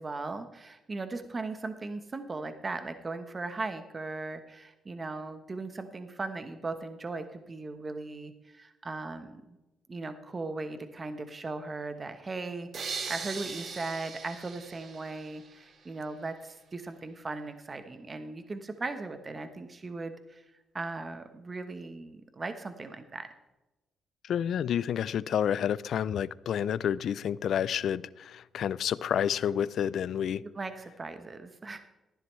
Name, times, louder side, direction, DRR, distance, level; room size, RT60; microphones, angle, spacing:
voice 1, 0.0-9.6 9.9-20.4 20.7-23.3 30.4-31.8, right 3 dB, 30° right, 9 dB, 1.0 m, -38 dB
sound 1, 12.7-15.7, right 5 dB, 50° right, 1.6 m, -40 dB
voice 2, 24.2-30.4, left 9 dB, 65° left, 19 dB, 0.4 m, -29 dB
13.5 x 11.0 x 3.2 m, 1.0 s
cardioid pair, 95°, 0 cm